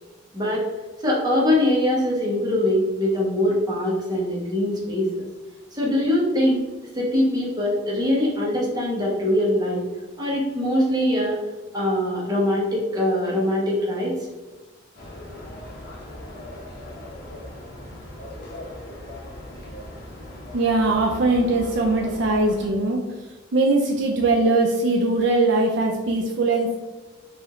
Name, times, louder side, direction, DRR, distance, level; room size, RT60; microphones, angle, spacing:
voice 1, 1.0-5.2 5.7-6.6 6.9-9.8 10.2-11.4 11.7-14.2, left 1 dB, 20° right, -5 dB, 1.1 m, -22 dB
sound 1, 15.0-22.7, left 1 dB, 50° left, 1.1 m, -39 dB
voice 2, 20.5-23.0 23.5-26.8, right 2 dB, 60° right, 1 dB, 0.4 m, -21 dB
4.7 x 2.7 x 3.0 m, 1.2 s
head